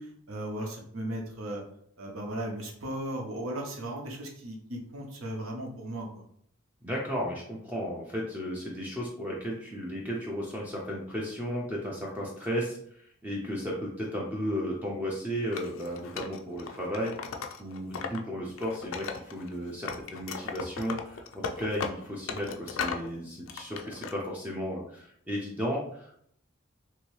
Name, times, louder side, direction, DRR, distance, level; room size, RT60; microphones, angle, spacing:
voice 1, 0.0-1.6 2.0-6.2, right 1 dB, 75° right, 1 dB, 0.8 m, -36 dB
voice 2, 6.8-26.1, equal, 10° right, -3 dB, 0.4 m, -34 dB
Wood, 15.5-18.2 18.5-19.5 19.9-23.1 23.5-24.1, left 5 dB, 65° left, 0.3 m, -37 dB
3.0 x 2.7 x 3.1 m, 0.66 s
head